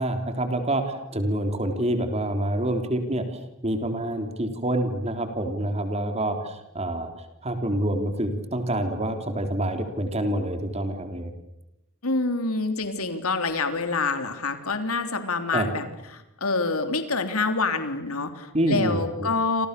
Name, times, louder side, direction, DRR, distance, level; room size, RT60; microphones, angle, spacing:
voice 1, 0.0-7.1 7.4-11.3 15.5-15.7 18.5-19.3, right 1 dB, 30° right, 7 dB, 3.5 m, -27 dB
voice 2, 12.0-19.7, left 3 dB, 80° left, 8 dB, 3.4 m, -27 dB
30.0 x 27.5 x 6.8 m, 0.90 s
head